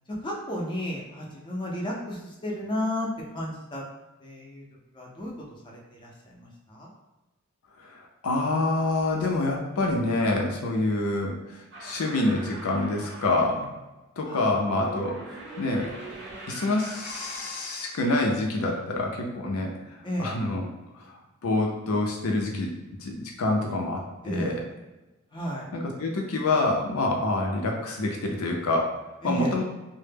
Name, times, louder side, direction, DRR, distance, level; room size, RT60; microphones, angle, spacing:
voice 1, 0.1-3.8 4.2-4.6 4.9-6.9 14.2-14.5 20.0-20.4 24.2-24.6 25.3-25.7 29.2-29.6, left 1 dB, 20° left, -3 dB, 0.5 m, -33 dB
voice 2, 8.2-13.8 14.2-15.9 16.5-20.6 21.0-21.1 21.4-22.7 23.0-24.6 25.7-28.9 29.2-29.6, left 2 dB, 80° left, 0 dB, 0.5 m, -27 dB
sound 1, 11.7-13.6 14.6-17.9, right 1 dB, 55° right, 0.5 m, -41 dB
2.1 x 2.0 x 3.3 m, 1.1 s
head